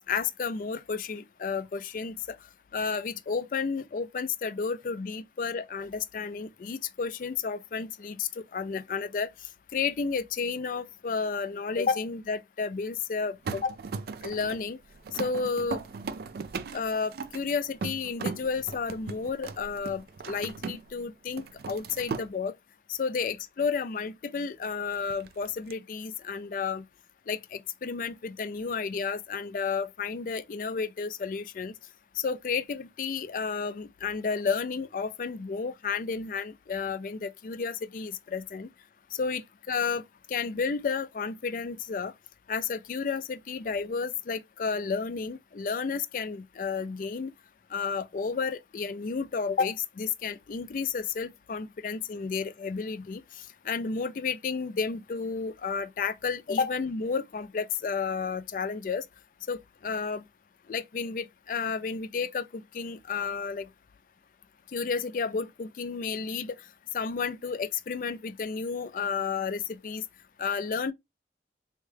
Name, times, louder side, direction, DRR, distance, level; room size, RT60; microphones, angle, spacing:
voice 1, 0.1-2.4 2.7-9.3 9.7-13.8 14.2-14.8 15.1-15.8 16.7-22.5 22.9-26.8 27.3-31.7 32.2-38.7 39.1-39.4 39.7-40.0 40.3-42.1 42.5-47.3 47.7-53.2 53.6-59.0 59.5-60.2 60.7-63.7 64.7-66.6 66.9-70.0 70.4-70.9, left 5 dB, 45° left, 0.3 m, -32 dB
sound 1, 13.4-21.0 21.3-22.3 24.9-25.7, right 5 dB, 55° right, 0.3 m, -38 dB
3.5 x 2.2 x 3.2 m
head